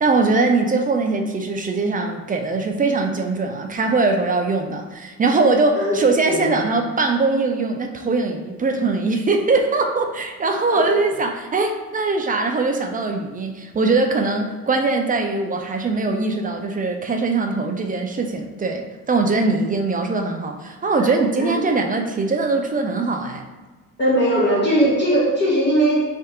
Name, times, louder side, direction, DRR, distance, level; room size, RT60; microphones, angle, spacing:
voice 1, 0.0-23.4, right 3 dB, 20° right, 3 dB, 0.4 m, -21 dB
voice 2, 21.0-21.5 24.0-26.0, right 1 dB, 20° left, -7 dB, 1.1 m, -19 dB
3.5 x 2.7 x 3.4 m, 1.3 s
figure-of-eight pair, 50°, 48 cm